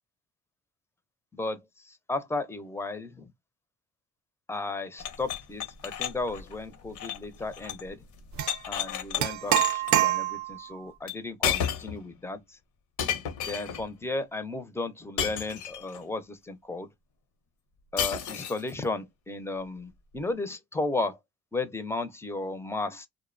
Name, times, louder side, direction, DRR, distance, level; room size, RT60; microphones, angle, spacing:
voice 1, 1.3-3.3 4.5-8.0 8.7-12.6 13.5-16.9 17.9-21.2 21.5-23.1, left 3 dB, 10° left, 0.5 m, -34 dB
sound 1, 5.0-7.9 8.2-9.2 9.6-10.0 11.1-11.2 11.4-12.0 13.0-13.9 15.2-16.0 18.0-18.7, left 9 dB, 75° left, 0.7 m, -32 dB
sound 2, 8.4-8.6 9.2-10.7, right 12 dB, 65° right, 0.5 m, -25 dB
2.5 x 2.0 x 2.4 m
cardioid pair, 90°, 30 cm